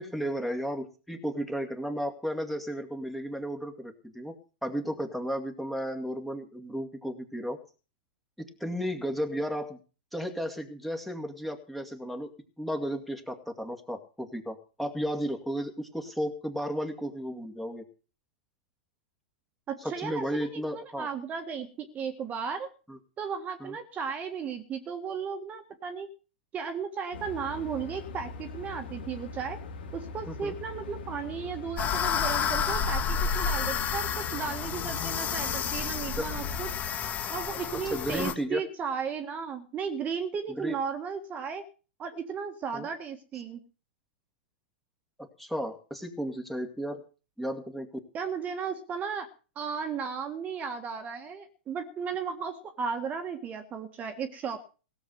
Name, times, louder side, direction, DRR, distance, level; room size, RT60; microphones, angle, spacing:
voice 1, 0.0-4.4 4.6-7.6 8.4-9.8 10.1-12.3 12.6-17.8 19.8-21.1 22.9-23.0 23.6-23.8 30.3-30.5 36.2-36.3 37.9-38.6 40.5-40.8 42.7-42.9 45.2-47.0 47.4-47.9, equal, ahead, 5 dB, 2.2 m, -34 dB
voice 2, 19.7-22.7 23.2-26.1 26.5-29.6 29.9-36.7 37.3-41.6 42.0-43.6 48.1-49.3 49.5-54.6, right 6 dB, 25° right, 7 dB, 1.7 m, -35 dB
sound 1, 27.1-36.8, left 3 dB, 75° left, 2.9 m, -41 dB
sound 2, 31.8-38.3, left 7 dB, 30° left, 1.6 m, -30 dB
17.0 x 7.2 x 7.9 m, 0.36 s
hypercardioid pair, 120°, 6 cm